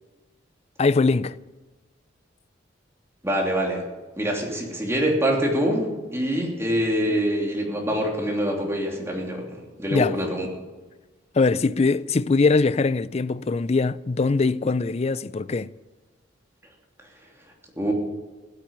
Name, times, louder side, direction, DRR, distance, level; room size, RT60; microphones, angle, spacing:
voice 1, 0.8-1.4 9.9-10.2 11.3-15.7, left 3 dB, 35° left, 0.4 m, -22 dB
voice 2, 3.2-3.8 4.2-9.5 9.8-10.5 17.8-17.9, equal, 15° right, 3.1 m, -25 dB
16.0 x 9.0 x 8.8 m
head